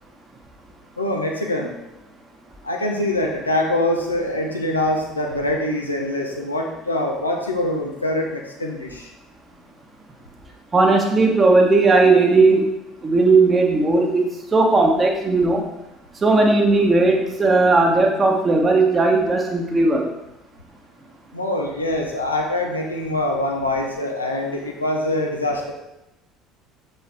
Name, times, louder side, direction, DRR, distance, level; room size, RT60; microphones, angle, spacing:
voice 1, 1.0-1.7 2.6-9.0 21.3-25.7, left 1 dB, 85° left, 1 dB, 0.9 m, -24 dB
voice 2, 10.7-12.7 13.0-14.2 14.5-15.6 16.2-20.1, right 3 dB, 25° right, 1 dB, 1.4 m, -16 dB
7.1 x 5.7 x 3.5 m, 0.92 s
figure-of-eight pair, 60°, 0 cm